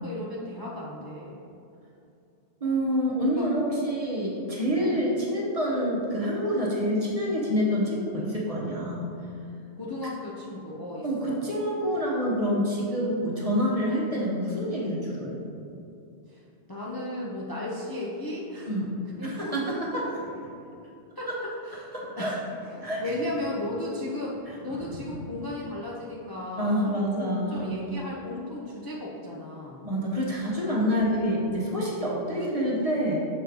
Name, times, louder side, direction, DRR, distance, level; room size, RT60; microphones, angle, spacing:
voice 1, 0.0-1.4 3.4-3.5 4.8-4.9 9.8-11.4 16.3-16.4 16.7-18.7 19.2-19.6 21.2-21.3 21.7-22.4 23.0-29.9 32.4-32.5, left 1 dB, 25° left, -5 dB, 0.6 m, -35 dB
voice 2, 2.6-9.0 11.0-15.4 18.7-20.5 21.3-21.4 21.9-22.4 22.7-23.0 24.5-25.2 26.6-27.8 29.8-33.2, equal, 35° right, -5 dB, 1.0 m, -27 dB
6.7 x 3.1 x 5.2 m, 2.7 s
omnidirectional pair, 1.1 m